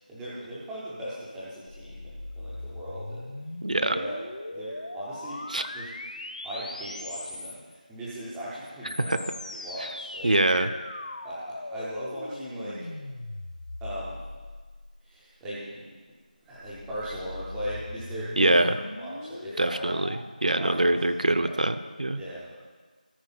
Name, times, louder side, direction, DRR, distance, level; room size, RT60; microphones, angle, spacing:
voice 1, 0.1-3.3 3.7-4.2 4.5-5.5 5.7-5.9 6.4-10.4 11.2-12.9 13.8-14.2 15.0-15.9 16.4-19.9 20.5-21.0 21.4-21.6 22.2-22.5, equal, ahead, -9 dB, 0.3 m, -38 dB
sound 1, 1.7-7.8 8.6-15.2 16.3-20.2, left 2 dB, 55° left, 0.8 m, -40 dB
voice 2, 3.6-4.0 5.5-5.6 9.1-9.2 10.2-10.7 18.4-18.7 19.6-22.2, right 2 dB, 60° right, 10 dB, 0.6 m, -24 dB
13.5 x 4.7 x 5.6 m, 1.4 s
figure-of-eight pair, 175°, 5 cm